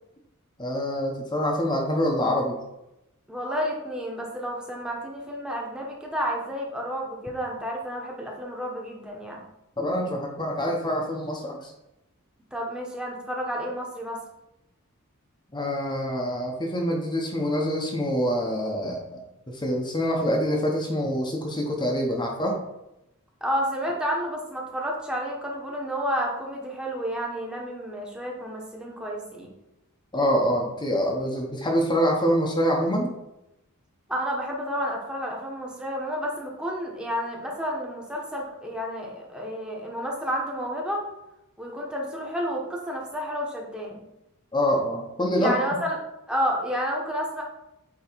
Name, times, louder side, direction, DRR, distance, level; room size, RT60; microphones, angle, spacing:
voice 1, 0.6-2.6 9.8-11.7 15.5-22.6 30.1-33.1 44.5-45.6, equal, 20° left, 0 dB, 1.0 m, -25 dB
voice 2, 3.3-9.4 12.5-14.2 23.4-29.5 34.1-41.0 41.6-44.0 45.4-46.0 46.3-47.4, equal, 5° right, -2 dB, 1.2 m, -30 dB
8.6 x 3.1 x 4.6 m, 0.89 s
head